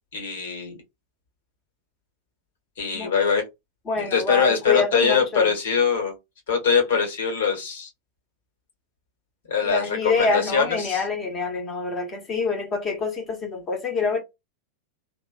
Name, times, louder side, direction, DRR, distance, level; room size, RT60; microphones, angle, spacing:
voice 1, 0.1-0.8 2.8-3.4 4.0-6.1 6.5-7.9 9.5-11.0, left 6 dB, 60° left, 1.4 m, -23 dB
voice 2, 3.8-5.5 9.6-14.2, left 4 dB, 25° left, 1.1 m, -26 dB
2.9 x 2.1 x 2.4 m
figure-of-eight pair, 90°, 0 cm